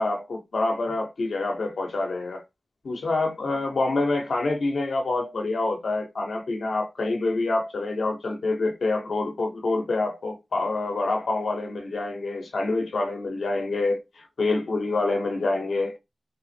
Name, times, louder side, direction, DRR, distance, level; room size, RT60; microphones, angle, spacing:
voice 1, 0.0-2.4 2.8-16.0, left 2 dB, 80° left, 0.9 m, -26 dB
3.5 x 2.0 x 4.2 m
wide cardioid pair, 70°, 0 cm